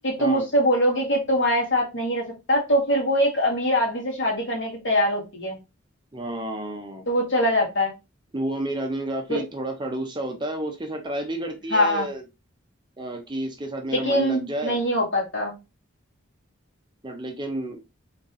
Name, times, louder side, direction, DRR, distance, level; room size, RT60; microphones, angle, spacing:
voice 1, 0.0-5.6 7.1-7.9 9.3-9.4 11.7-12.1 13.9-15.5, equal, 60° left, -3 dB, 2.2 m, -23 dB
voice 2, 6.1-7.0 8.3-12.2 13.0-14.8 17.0-17.8, right 1 dB, 20° right, 3 dB, 0.7 m, -30 dB
3.7 x 2.9 x 4.0 m, 0.25 s
head